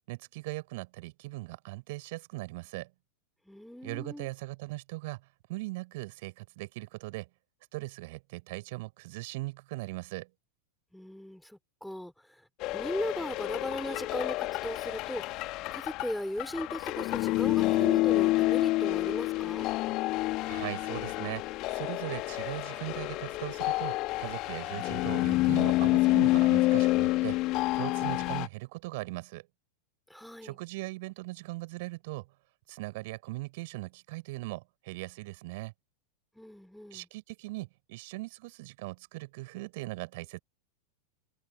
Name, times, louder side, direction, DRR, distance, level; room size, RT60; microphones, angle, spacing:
voice 1, 0.1-2.9 3.8-5.2 5.5-7.3 7.7-10.3 20.5-21.4 21.7-27.4 27.7-29.5 30.4-32.3 32.7-35.7 36.9-40.4, right 22 dB, 50° right, 6.6 m, -39 dB
voice 2, 3.5-4.3 10.9-12.4 12.7-15.2 15.7-19.7 30.1-30.6 36.3-37.1, equal, ahead, 5.9 m, -37 dB
sound 1, 12.6-28.5, left 19 dB, 40° left, 2.6 m, -28 dB
figure-of-eight pair, 90°, 0 cm